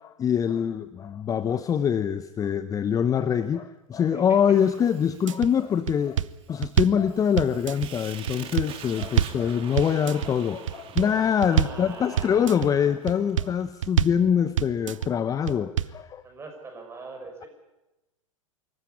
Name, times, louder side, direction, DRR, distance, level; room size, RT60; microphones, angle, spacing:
voice 1, 0.0-6.2 6.5-16.2, left 8 dB, 20° left, 13 dB, 0.7 m, -24 dB
Fire, 4.5-13.7, right 9 dB, 30° right, 2.4 m, -46 dB
sound 1, 5.1-5.5 5.9-7.0 7.4-7.9 8.3-9.4 9.8-10.3 10.7-11.1 11.4-11.8 12.2-12.7 13.1-13.5 13.8-14.2 14.6-15.1 15.5-16.0, right 10 dB, 70° right, 0.8 m, -26 dB
voice 2, 11.5-12.7 16.2-17.5, right 3 dB, 15° right, 3 dB, 6.1 m, -41 dB
25.0 x 14.5 x 9.7 m, 1.0 s
figure-of-eight pair, 100°, 17 cm